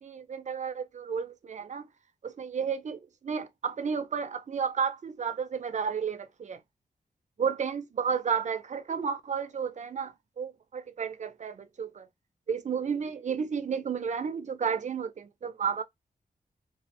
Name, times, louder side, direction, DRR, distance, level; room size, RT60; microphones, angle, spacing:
voice 1, 0.0-1.8 2.2-6.6 7.4-12.1 12.5-15.8, right 6 dB, 50° right, 0.5 m, -32 dB
2.4 x 2.1 x 2.8 m
wide cardioid pair, 85°, 15 cm